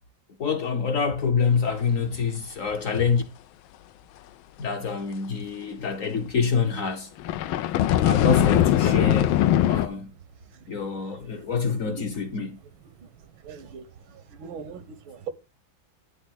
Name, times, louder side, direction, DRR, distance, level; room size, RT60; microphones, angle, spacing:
voice 1, 0.4-3.2 4.6-7.1 8.0-10.1 10.7-12.6, left 6 dB, 50° left, 1.1 m, -26 dB
sound 1, 7.2-9.9, left 12 dB, 85° left, 1.4 m, -21 dB
voice 2, 13.4-13.8 14.4-15.3, right 7 dB, 80° right, 1.8 m, -39 dB
11.0 x 3.7 x 6.3 m
omnidirectional pair, 2.2 m